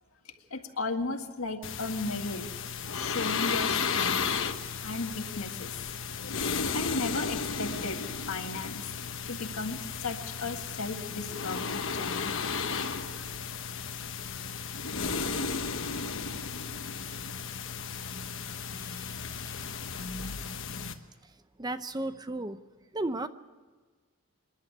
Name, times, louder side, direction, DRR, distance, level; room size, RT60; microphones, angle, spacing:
voice 1, 0.5-2.5 2.9-4.4 4.8-6.3 6.7-8.0 8.3-8.8 9.3-12.3 13.1-13.5, left 3 dB, 80° left, 5 dB, 1.9 m, -35 dB
sound 1, 1.6-20.9, left 5 dB, 65° left, 1.2 m, -34 dB
voice 2, 18.4-19.1 19.4-19.6 21.6-22.6 22.9-23.3, right 2 dB, 20° right, 11 dB, 0.7 m, -35 dB
27.0 x 11.0 x 9.6 m, 1.4 s
head